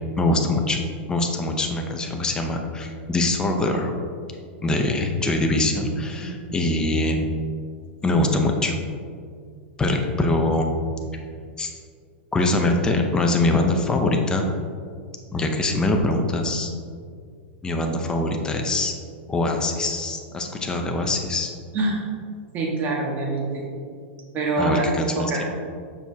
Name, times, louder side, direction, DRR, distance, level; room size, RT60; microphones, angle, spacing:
voice 1, 0.2-0.8 1.1-3.9 4.6-7.3 8.0-8.7 9.8-10.7 11.6-11.7 12.3-14.5 15.3-16.7 17.6-18.9 19.3-21.5 24.6-25.4, left 2 dB, 10° left, 3 dB, 0.6 m, -23 dB
voice 2, 5.9-6.4 21.7-22.1 22.5-23.7 24.3-24.9 25.1-25.4, right 3 dB, 30° right, -2 dB, 1.4 m, -25 dB
6.8 x 6.0 x 2.8 m, 2.2 s
supercardioid pair, 140°, 7 cm